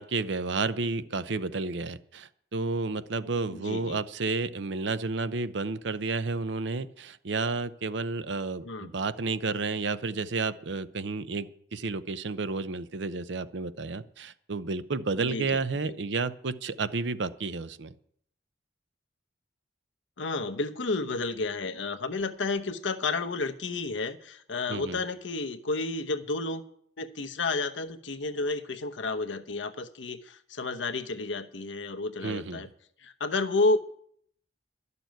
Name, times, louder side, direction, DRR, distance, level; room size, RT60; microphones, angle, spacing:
voice 1, 0.0-17.9 24.7-25.0 32.2-32.7, right 3 dB, 70° right, 14 dB, 0.7 m, -31 dB
voice 2, 3.5-4.0 8.6-8.9 15.2-15.6 15.8-15.9 20.2-26.6 27.0-32.7 33.0-33.8, left 3 dB, 85° left, 8 dB, 0.9 m, -31 dB
12.0 x 6.8 x 9.2 m, 0.66 s
head